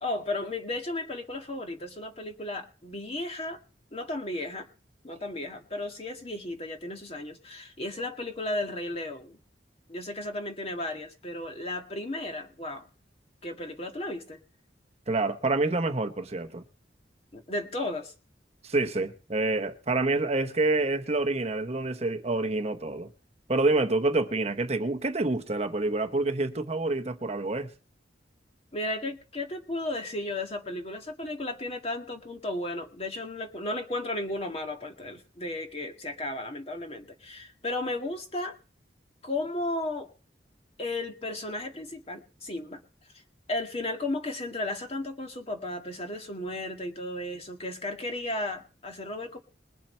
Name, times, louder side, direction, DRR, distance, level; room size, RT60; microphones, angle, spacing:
voice 1, 0.0-3.6 3.9-4.7 5.0-9.4 9.9-12.9 13.4-14.4 17.3-18.1 28.7-38.6 39.2-40.1 40.8-42.8 43.1-43.2 43.5-49.4, left 2 dB, 35° left, 1.9 m, -34 dB
voice 2, 15.1-16.6 18.6-23.1 23.5-27.7, right 2 dB, 35° right, 0.9 m, -27 dB
21.5 x 7.5 x 4.5 m
head